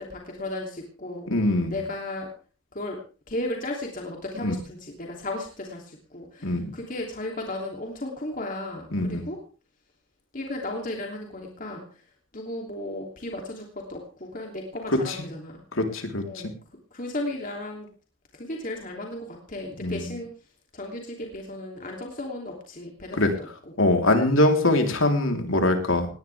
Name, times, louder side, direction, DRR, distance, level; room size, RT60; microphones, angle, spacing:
voice 1, 0.0-1.3 1.7-2.3 2.7-3.0 3.3-9.4 10.3-12.0 12.3-15.6 16.2-16.5 16.9-17.9 18.3-20.3 20.7-23.2, left 1 dB, 40° left, 1 dB, 3.0 m, -35 dB
voice 2, 1.3-1.8 4.4-4.5 6.4-6.7 8.9-9.2 15.1-15.2 15.8-16.5 19.8-20.0 23.1-23.3 23.8-26.1, left 1 dB, 75° left, 4 dB, 3.6 m, -23 dB
19.0 x 19.0 x 3.5 m, 0.36 s
head